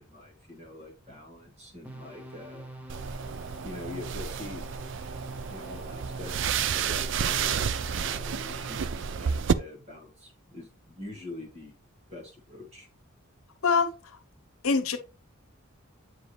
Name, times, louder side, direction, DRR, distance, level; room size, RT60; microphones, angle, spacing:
voice 1, 0.0-2.7 3.6-4.6 5.5-7.7 7.9-8.9 9.2-11.8 12.1-12.9, left 2 dB, 30° right, 2.4 m, -44 dB
sound 1, 1.8-9.4, right 1 dB, 5° right, 0.9 m, -44 dB
sound 2, 2.9-9.5, right 7 dB, 55° right, 0.4 m, -30 dB
voice 2, 13.6-14.2 14.6-15.0, left 5 dB, 85° left, 1.0 m, -25 dB
8.3 x 4.8 x 3.2 m
head